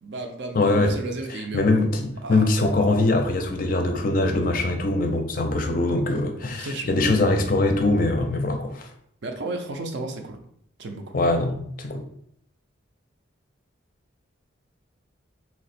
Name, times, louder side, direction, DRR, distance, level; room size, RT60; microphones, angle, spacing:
voice 1, 0.0-1.8 2.2-2.5 6.6-7.2 9.2-10.4 10.8-11.2, right 2 dB, 65° right, 4 dB, 0.5 m, -33 dB
voice 2, 0.5-0.9 1.5-8.9 11.1-12.0, left 2 dB, 45° left, 5 dB, 0.4 m, -22 dB
3.0 x 2.1 x 4.1 m, 0.69 s
head